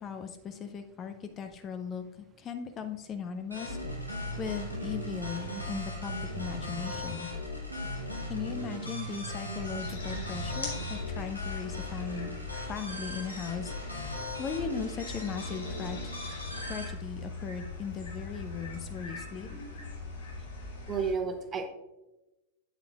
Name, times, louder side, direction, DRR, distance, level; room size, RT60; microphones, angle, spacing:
voice 1, 0.0-2.0 2.4-3.8 4.4-7.3 8.3-12.3 12.7-14.1 14.4-16.0 16.6-19.5, left 6 dB, 30° left, 8 dB, 0.6 m, -38 dB
sound 1, 3.5-16.9, left 3 dB, 85° left, 1.8 m, -39 dB
Piano, 3.5-11.5, right 4 dB, 75° right, 0.6 m, -41 dB
sound 2, 9.5-21.1, left 3 dB, 70° left, 2.3 m, -41 dB
voice 2, 19.5-19.9 20.9-21.7, right 5 dB, 25° right, 6 dB, 1.0 m, -33 dB
8.7 x 8.7 x 2.4 m, 1.0 s
figure-of-eight pair, 90°, 0 cm